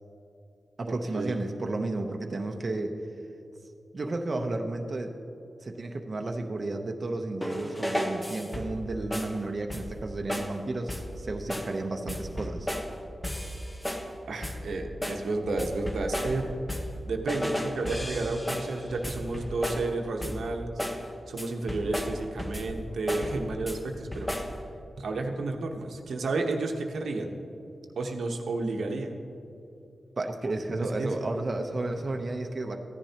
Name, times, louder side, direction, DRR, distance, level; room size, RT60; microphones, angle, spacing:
voice 1, 0.8-3.0 3.9-5.1 5.6-12.7 30.2-32.8, right 2 dB, 45° right, 3 dB, 0.8 m, -32 dB
sound 1, 7.4-8.8 9.1-9.4 9.7-10.0 10.3-10.6 10.9-11.2 11.5-11.8 12.1-12.9 13.2-14.1 14.4-14.7 15.0-17.0 17.3-19.9 20.2-20.5 20.8-21.1 21.4-22.8 23.1-23.8 24.1-24.6, left 1 dB, 15° left, 1.0 m, -34 dB
voice 2, 14.3-16.5 17.0-20.7 21.0-24.3 25.0-27.4 28.0-29.2 30.8-31.1, right 3 dB, 85° right, 3 dB, 1.0 m, -31 dB
15.0 x 10.5 x 2.9 m, 2.8 s
cardioid pair, 75°, 0 cm